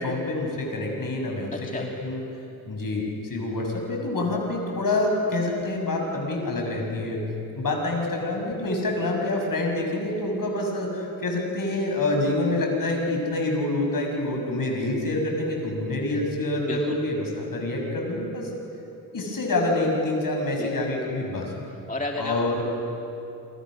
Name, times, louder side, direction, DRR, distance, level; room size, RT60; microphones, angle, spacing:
voice 1, 0.0-2.2 2.7-7.2 7.6-18.5 19.1-21.5 22.2-22.6, left 2 dB, 55° left, 1 dB, 7.2 m, -27 dB
voice 2, 1.5-1.9 16.6-17.0 20.6-20.7 21.9-22.6, left 2 dB, 20° left, 1 dB, 2.1 m, -32 dB
28.0 x 25.0 x 6.5 m, 2.8 s
cardioid pair, 60°, 40 cm